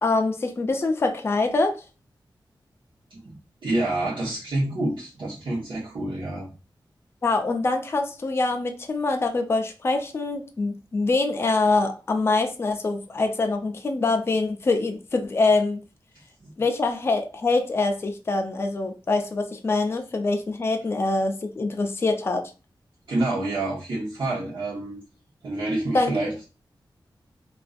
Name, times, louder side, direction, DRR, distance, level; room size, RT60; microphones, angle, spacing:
voice 1, 0.0-1.8 7.2-15.8 16.6-22.4 25.9-26.1, left 3 dB, 30° left, 0.3 m, -24 dB
voice 2, 3.6-6.5 16.4-16.5 23.1-25.0 25.4-26.3, right 2 dB, 85° right, 1.0 m, -27 dB
2.5 x 2.3 x 2.4 m
wide cardioid pair, 125°, 8 cm